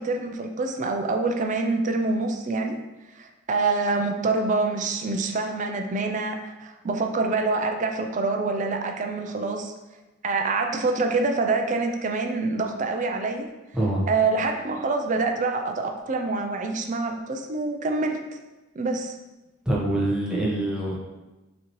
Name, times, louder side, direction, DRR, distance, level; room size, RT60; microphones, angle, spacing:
voice 1, 0.0-2.8 3.2-9.7 10.2-13.5 14.1-18.2 18.7-19.2, right 3 dB, 35° right, 4 dB, 0.4 m, -26 dB
voice 2, 19.6-21.0, right 1 dB, 5° right, -6 dB, 0.9 m, -25 dB
6.0 x 2.9 x 3.1 m, 1.1 s
head